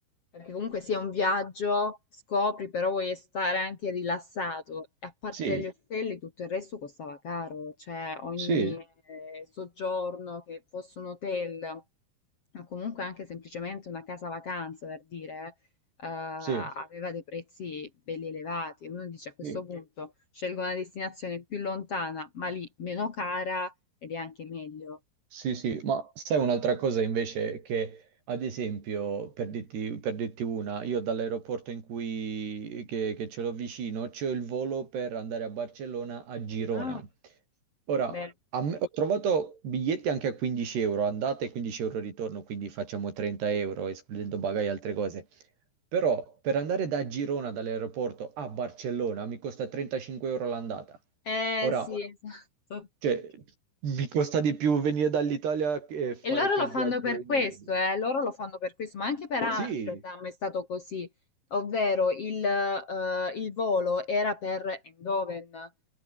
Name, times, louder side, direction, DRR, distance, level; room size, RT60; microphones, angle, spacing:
voice 1, 0.3-2.0 2.3-8.8 9.1-11.8 12.5-15.5 16.0-23.7 24.0-25.0 36.7-37.0 38.1-38.3 51.3-52.4 52.7-52.9 56.2-61.1 61.5-65.7, left 3 dB, 45° left, 2.4 m, -32 dB
voice 2, 5.3-5.7 8.4-8.8 16.4-16.7 19.4-19.6 25.3-37.0 37.9-38.2 38.5-45.2 45.9-51.0 51.6-51.9 53.0-53.4 53.8-57.4 59.6-60.0, right 6 dB, 65° right, 6.7 m, -31 dB
omnidirectional pair, 5.1 m